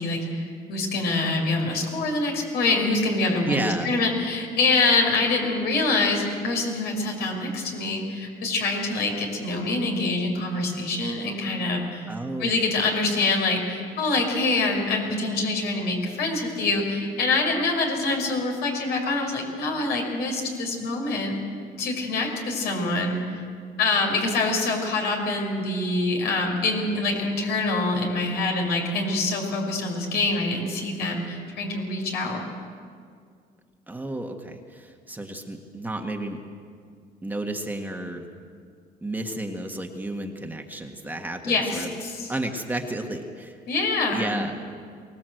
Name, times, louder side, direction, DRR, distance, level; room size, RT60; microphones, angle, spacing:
voice 1, 0.0-12.1 12.4-21.3 21.8-23.4 23.8-32.4 41.4-42.3 43.7-44.4, left 3 dB, 75° left, 1 dB, 5.6 m, -25 dB
voice 2, 3.4-3.9 12.1-12.6 33.9-36.4 37.2-38.2 39.0-41.9 42.3-43.6 44.1-44.6, right 1 dB, 10° right, 3 dB, 1.8 m, -32 dB
23.5 x 18.5 x 8.0 m, 2.2 s
cardioid pair, 110°, 17 cm